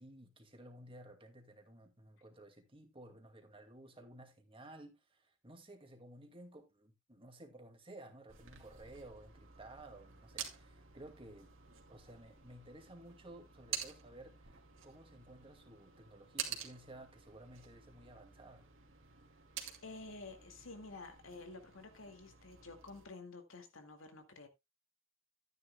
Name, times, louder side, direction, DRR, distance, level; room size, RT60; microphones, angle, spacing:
voice 1, 0.0-11.5 11.9-18.7, right 1 dB, 25° right, 2.1 m, -55 dB
sound 1, 8.3-23.1, right 8 dB, 80° right, 2.4 m, -49 dB
voice 2, 19.8-24.5, left 3 dB, 90° left, 2.1 m, -51 dB
12.5 x 9.9 x 2.3 m
head